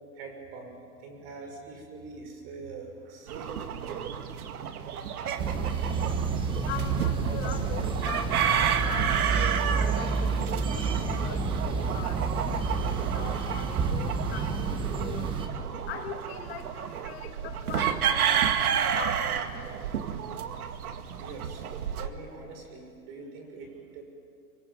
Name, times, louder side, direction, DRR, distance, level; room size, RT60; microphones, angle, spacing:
voice 1, 0.2-0.7 1.0-4.2 14.9-15.4 21.2-21.6 22.0-24.0, right 4 dB, 35° right, 4 dB, 6.4 m, -44 dB
sound 1, 3.3-22.1, right 8 dB, 65° right, 2.1 m, -31 dB
sound 2, 5.4-15.5, right 5 dB, 10° right, 1.3 m, -29 dB
voice 2, 6.7-15.3 15.9-19.7, left 9 dB, 40° left, 6 dB, 1.8 m, -41 dB
26.5 x 25.0 x 9.0 m, 2.3 s
hypercardioid pair, 160°, 46 cm